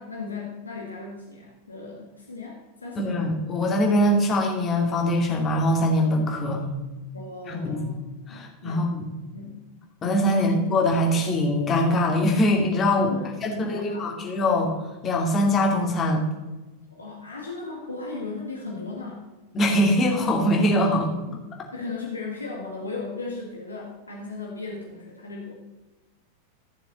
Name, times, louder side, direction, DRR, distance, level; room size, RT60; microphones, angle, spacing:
voice 1, 0.0-3.3 7.1-8.0 8.3-8.9 9.3-9.6 10.2-10.6 13.1-14.1 16.9-19.2 20.9-21.4 21.7-25.5, left 3 dB, 80° left, -1 dB, 1.7 m, -36 dB
voice 2, 3.0-6.7 7.5-7.9 8.3-9.1 10.0-13.1 13.4-14.7 15.0-16.2 19.5-21.1, left 1 dB, 25° left, 0 dB, 2.7 m, -22 dB
15.0 x 6.8 x 4.1 m, 1.2 s
figure-of-eight pair, 90°, 0 cm